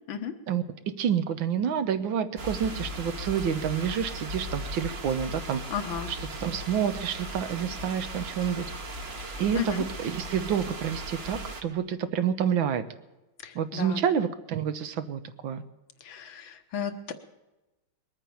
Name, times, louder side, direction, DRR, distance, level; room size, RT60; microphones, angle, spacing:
voice 1, 0.5-5.6 6.1-8.7 9.4-12.8 13.5-15.6, right 8 dB, 70° right, 11 dB, 1.6 m, -28 dB
sound 1, 2.4-11.6, right 1 dB, 35° right, 1.3 m, -37 dB
voice 2, 5.7-6.1 9.5-9.9 13.4-14.1 16.0-17.1, left 8 dB, 70° left, 8 dB, 1.9 m, -34 dB
21.0 x 9.1 x 7.0 m, 1.1 s
omnidirectional pair, 2.3 m